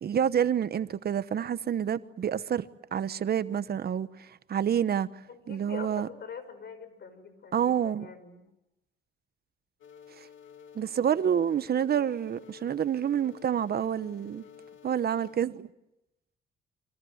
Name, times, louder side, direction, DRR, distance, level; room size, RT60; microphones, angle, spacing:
voice 1, 0.0-5.1 5.5-6.1 7.5-8.1 10.2-10.3 10.7-14.4 14.8-15.7, right 9 dB, 50° right, 1.1 m, -28 dB
voice 2, 5.3-8.4, left 6 dB, 55° left, 6.2 m, -44 dB
sound 1, 9.8-15.4, left 8 dB, 80° left, 3.6 m, -52 dB
29.5 x 25.0 x 7.9 m
cardioid pair, 90°, 20 cm